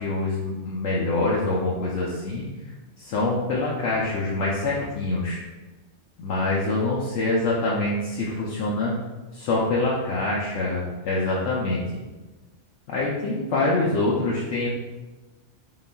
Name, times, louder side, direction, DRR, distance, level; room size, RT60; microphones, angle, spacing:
voice 1, 0.0-2.5 3.0-5.4 6.2-9.0 9.3-11.8 12.9-14.7, left 2 dB, 70° left, -5 dB, 0.9 m, -25 dB
4.0 x 3.8 x 2.2 m, 1.2 s
omnidirectional pair, 1.3 m